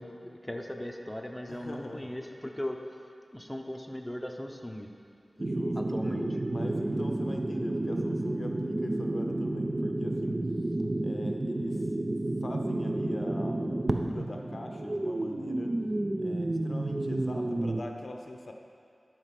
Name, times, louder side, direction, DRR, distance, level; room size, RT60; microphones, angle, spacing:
voice 1, 0.0-2.8 3.3-4.9 5.8-6.4, left 1 dB, 10° left, 1 dB, 0.7 m, -38 dB
voice 2, 1.5-2.2 5.4-5.8 6.5-12.0 12.4-15.8 16.1-18.5, left 2 dB, 55° left, 3 dB, 0.6 m, -43 dB
sound 1, 5.4-17.8, right 2 dB, 40° right, 0.5 m, -31 dB
11.5 x 4.4 x 5.9 m, 2.4 s
wide cardioid pair, 90°, 0 cm